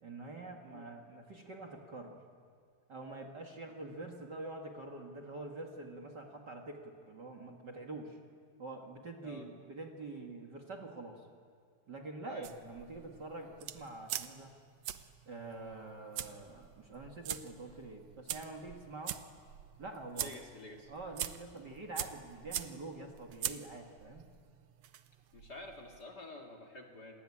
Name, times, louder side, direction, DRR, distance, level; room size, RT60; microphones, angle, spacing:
voice 1, 0.0-2.2 2.9-8.2 8.6-11.3 11.9-14.5 15.3-19.2 19.8-20.4 20.9-24.3, right 2 dB, 40° right, 2 dB, 2.2 m, -46 dB
sound 1, 12.4-26.0, right 11 dB, 70° right, 2.0 m, -44 dB
voice 2, 20.1-20.9 25.3-27.1, left 2 dB, 35° left, 4 dB, 2.3 m, -49 dB
27.0 x 20.0 x 9.9 m, 2.2 s
omnidirectional pair, 3.4 m